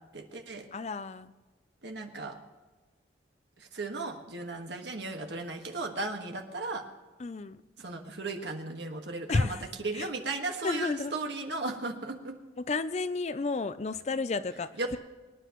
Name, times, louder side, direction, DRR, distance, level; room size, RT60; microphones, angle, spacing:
voice 1, 0.1-0.7 1.8-2.4 3.6-6.8 7.8-12.3 14.8-15.0, right 3 dB, 65° right, 4 dB, 1.6 m, -36 dB
voice 2, 0.7-1.3 7.2-7.6 9.3-9.6 10.0-10.1 10.6-11.1 12.7-15.0, left 3 dB, 35° left, 14 dB, 0.4 m, -31 dB
24.5 x 10.0 x 3.1 m, 1.3 s
head